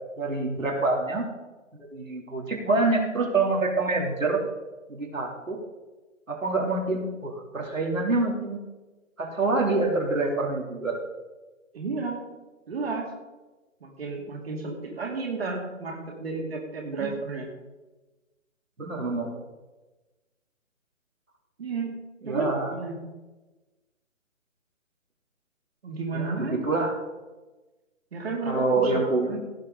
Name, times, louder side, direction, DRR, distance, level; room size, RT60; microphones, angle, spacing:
voice 1, 0.2-1.2 1.7-4.4 4.9-5.6 6.3-8.6 9.2-10.9 17.0-17.1 18.8-19.3 22.2-22.7 26.1-27.0 28.4-29.3, right 3 dB, 85° right, -1 dB, 3.0 m, -26 dB
voice 2, 11.7-12.2 12.7-13.1 13.8-17.5 21.6-21.9 22.3-23.0 25.8-26.6 28.1-28.9 29.3-29.4, right 4 dB, 50° right, 0 dB, 2.5 m, -32 dB
17.5 x 7.6 x 3.8 m, 1.2 s
figure-of-eight pair, 150°, 39 cm